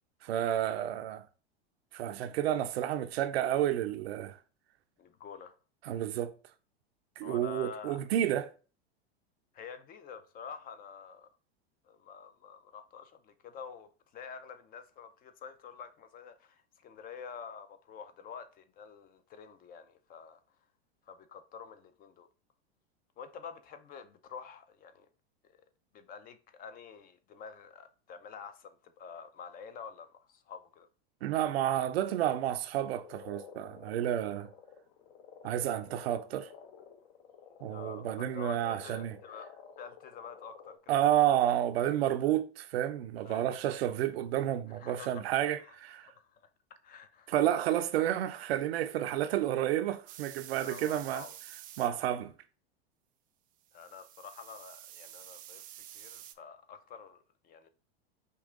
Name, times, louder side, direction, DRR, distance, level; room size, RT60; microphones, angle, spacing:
voice 1, 0.2-1.2 1.9-4.3 5.9-6.3 7.2-8.5 31.2-34.5 35.4-36.5 37.6-39.1 40.9-46.1 47.3-51.3 51.8-52.3, right 12 dB, 70° right, 0.6 m, -30 dB
voice 2, 5.0-5.6 7.2-8.0 9.5-11.3 11.8-20.4 21.1-22.3 23.2-25.1 25.9-30.9 37.7-39.5 39.8-41.0 41.8-42.0 42.3-42.4 43.2-43.5 44.7-45.2 45.6-46.4 46.8-47.3 50.2-51.4 53.7-57.7, left 6 dB, 30° left, 0.5 m, -48 dB
Frog, 33.0-40.8, left 7 dB, 55° left, 0.8 m, -52 dB
sound 1, 50.1-51.9 53.7-56.3, right 12 dB, 25° right, 0.4 m, -49 dB
5.3 x 2.4 x 3.6 m
hypercardioid pair, 100°, 32 cm